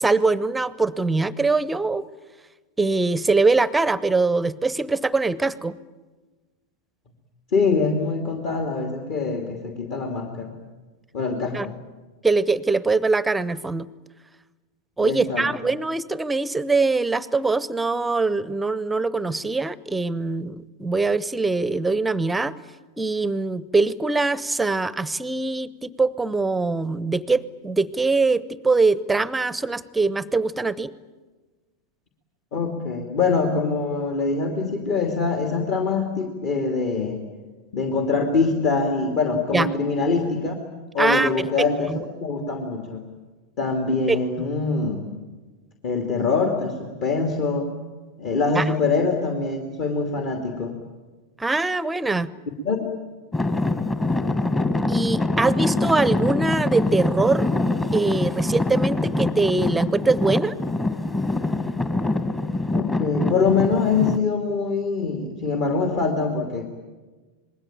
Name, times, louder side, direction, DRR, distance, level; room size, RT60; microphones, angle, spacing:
voice 1, 0.0-2.1 2.8-5.8 11.5-11.7 12.2-13.9 15.0-22.6 23.0-30.9 39.5-39.7 41.0-42.0 44.1-44.5 48.5-48.7 51.4-52.3 54.9-57.5 57.9-60.6, right 3 dB, 10° right, 19 dB, 0.8 m, -23 dB
voice 2, 7.5-10.5 11.1-11.7 15.0-15.5 32.5-37.2 37.7-40.6 40.9-43.0 43.6-45.1 45.8-47.7 48.2-50.7 52.6-52.9 62.7-66.7, left 4 dB, 45° left, 4 dB, 2.8 m, -24 dB
Traffic noise roadway noise / Engine, 53.3-64.2, left 2 dB, 15° left, 1.7 m, -24 dB
27.0 x 21.0 x 9.0 m, 1.3 s
figure-of-eight pair, 90°, 0 cm